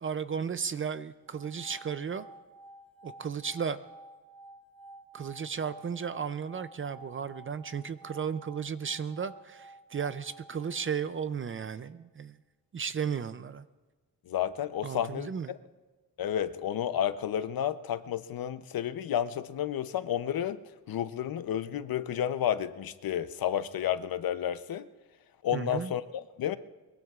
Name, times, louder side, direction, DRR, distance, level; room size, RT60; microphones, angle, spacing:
voice 1, 0.0-2.3 3.0-3.8 5.1-12.3 12.7-13.6 14.8-15.5 25.5-25.9, right 7 dB, 35° right, 13 dB, 0.4 m, -34 dB
sound 1, 1.2-11.4, right 2 dB, 5° left, 3.0 m, -52 dB
voice 2, 14.3-15.6 16.2-20.6 20.9-24.9 25.4-26.6, left 10 dB, 65° left, 12 dB, 0.7 m, -31 dB
23.0 x 22.0 x 2.4 m, 1.2 s
wide cardioid pair, 170°, 38 cm